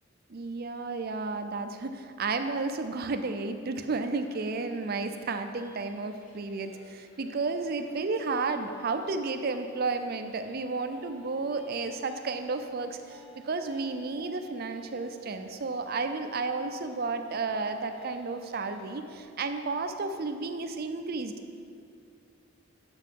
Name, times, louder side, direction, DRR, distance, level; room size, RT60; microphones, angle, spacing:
voice 1, 0.3-21.3, right 3 dB, 50° right, 8 dB, 0.5 m, -32 dB
sound 1, 4.1-19.2, equal, 80° left, 1.3 m, -54 dB
7.8 x 7.0 x 4.6 m, 2.3 s
head